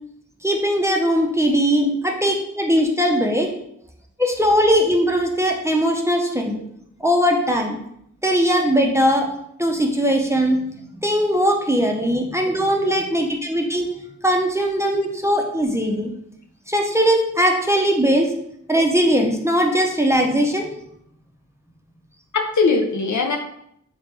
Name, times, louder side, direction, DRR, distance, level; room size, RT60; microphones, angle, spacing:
voice 1, 0.4-1.9 2.2-3.5 4.2-6.6 7.0-7.8 8.2-9.3 9.6-10.6 11.0-13.9 14.2-16.1 16.7-18.3 18.7-20.7, equal, 10° right, 1 dB, 0.5 m, -19 dB
voice 2, 22.3-23.4, left 4 dB, 70° left, 5 dB, 0.5 m, -21 dB
3.3 x 3.0 x 3.3 m, 0.73 s
wide cardioid pair, 60°, 31 cm